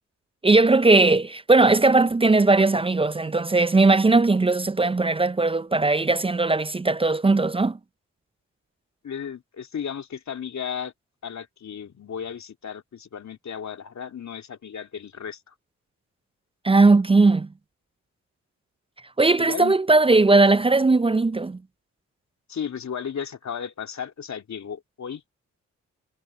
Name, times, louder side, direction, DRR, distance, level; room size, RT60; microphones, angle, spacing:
voice 1, 0.4-7.8 16.6-17.5 19.2-21.6, right 3 dB, 20° right, 0.5 m, -18 dB
voice 2, 9.0-10.9 11.2-15.4 19.4-19.7 22.5-25.3, left 7 dB, 60° left, 2.9 m, -34 dB
supercardioid pair, 50°, 32 cm